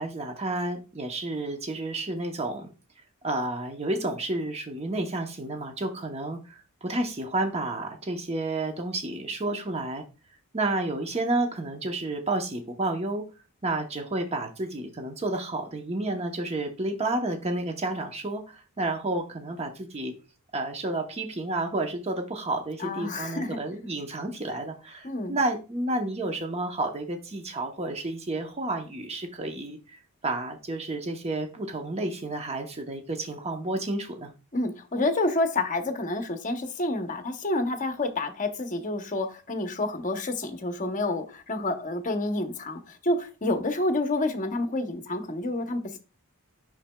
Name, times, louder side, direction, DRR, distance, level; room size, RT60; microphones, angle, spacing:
voice 1, 0.0-2.7 3.2-10.0 10.5-13.2 13.6-20.1 20.5-34.3, right 2 dB, 30° right, 4 dB, 0.8 m, -31 dB
voice 2, 22.8-23.6 25.0-25.4 34.5-46.0, left 2 dB, 35° left, 7 dB, 0.8 m, -29 dB
7.3 x 6.0 x 2.2 m, 0.32 s
head